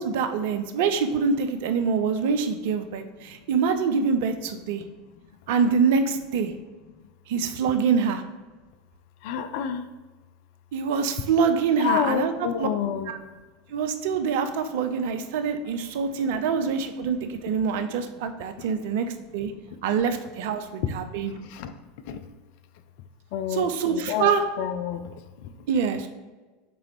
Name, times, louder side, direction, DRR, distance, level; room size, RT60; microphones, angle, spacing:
voice 1, 0.0-4.8 5.5-6.5 7.3-8.2 10.7-12.3 12.6-12.7 13.1-13.2 13.7-19.1 19.3-19.5 19.8-21.4 23.5-24.4 25.7-26.1, right 6 dB, 55° right, 8 dB, 0.4 m, -25 dB
voice 2, 9.2-9.8 11.8-13.1 21.6-21.7 22.1-22.2 23.3-25.0, left 9 dB, 55° left, 10 dB, 0.3 m, -28 dB
3.8 x 3.1 x 4.4 m, 1.3 s
figure-of-eight pair, 80°, 0 cm